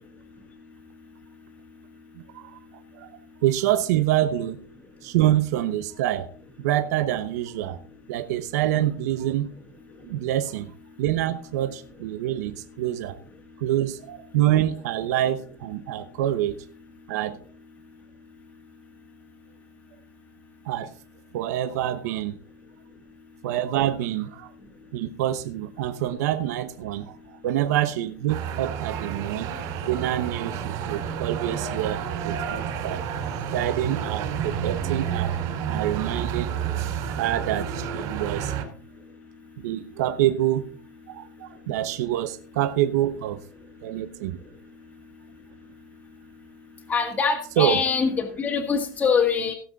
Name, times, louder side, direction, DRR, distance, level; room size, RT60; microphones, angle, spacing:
voice 1, 2.9-4.6 5.0-6.3 6.6-7.8 8.1-9.5 10.0-10.7 11.0-13.2 13.6-16.6 17.1-17.4 20.6-20.9 21.3-22.4 23.4-24.5 24.9-29.5 29.8-33.0 33.5-35.4 35.7-36.5 37.2-38.5 39.6-40.6 41.1-43.4 43.8-44.4 47.6-47.8, right 12 dB, 60° right, 0.9 m, -26 dB
sound 1, 28.3-38.6, right 8 dB, 40° right, 4.2 m, -30 dB
voice 2, 46.9-49.5, left 5 dB, 15° left, 1.8 m, -23 dB
17.5 x 7.7 x 4.1 m
supercardioid pair, 175°, 10 cm